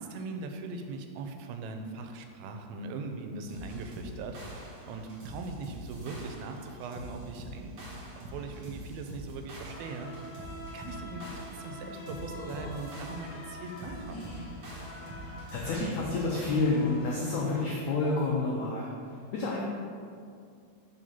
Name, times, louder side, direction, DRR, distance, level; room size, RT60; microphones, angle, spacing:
voice 1, 0.0-14.5, right 3 dB, 90° right, 5 dB, 2.5 m, -40 dB
sound 1, 3.5-17.1, equal, 45° right, 1.6 m, -45 dB
sound 2, 9.7-17.6, left 1 dB, 65° left, 1.1 m, -45 dB
voice 2, 15.5-19.6, left 3 dB, 85° left, -3 dB, 1.6 m, -29 dB
5.4 x 5.0 x 5.5 m, 2.3 s
omnidirectional pair, 4.3 m